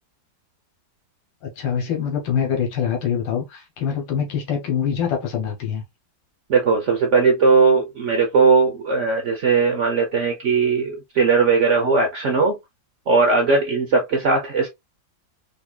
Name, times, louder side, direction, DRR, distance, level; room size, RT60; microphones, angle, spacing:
voice 1, 1.4-5.8, left 7 dB, 75° left, 1.6 m, -24 dB
voice 2, 6.5-12.6 13.1-14.7, right 4 dB, 60° right, 0.7 m, -18 dB
4.1 x 2.9 x 2.3 m
omnidirectional pair, 2.0 m